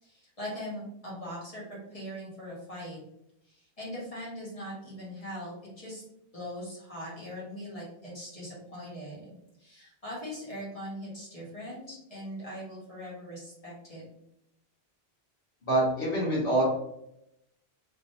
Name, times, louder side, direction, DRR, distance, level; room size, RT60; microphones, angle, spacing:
voice 1, 0.0-3.0 3.4-6.0 6.3-9.3 9.6-14.0, equal, 35° left, -7 dB, 1.5 m, -41 dB
voice 2, 15.6-16.6, right 2 dB, 60° left, -7 dB, 1.4 m, -25 dB
3.2 x 3.0 x 2.7 m, 0.80 s
omnidirectional pair, 1.1 m